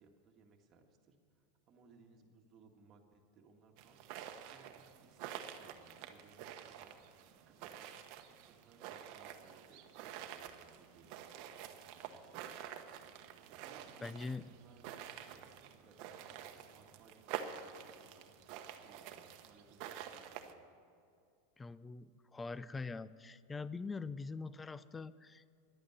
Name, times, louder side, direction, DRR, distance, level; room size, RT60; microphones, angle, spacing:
voice 1, 0.0-7.2 7.5-8.1 8.5-12.6 13.5-18.4 18.8-20.6, right 4 dB, 30° right, 2 dB, 1.7 m, -65 dB
sound 1, 3.8-20.5, right 9 dB, 50° right, 1.0 m, -49 dB
voice 2, 14.0-14.5 21.6-25.6, left 4 dB, 15° left, 17 dB, 0.4 m, -43 dB
11.0 x 8.7 x 9.4 m, 2.4 s
supercardioid pair, 140°, 0 cm